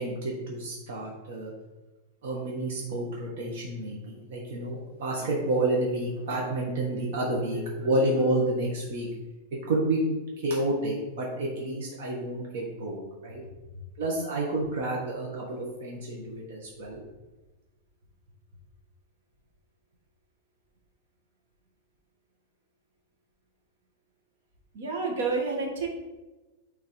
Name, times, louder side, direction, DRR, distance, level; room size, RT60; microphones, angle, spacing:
voice 1, 0.0-1.5 2.2-9.1 9.7-10.0 10.4-13.4 14.0-17.0, right 1 dB, 55° right, -3 dB, 1.3 m, -29 dB
voice 2, 24.7-25.9, right 4 dB, 75° right, 1 dB, 1.5 m, -29 dB
8.5 x 3.6 x 3.2 m, 1.2 s
supercardioid pair, 175°, 0 cm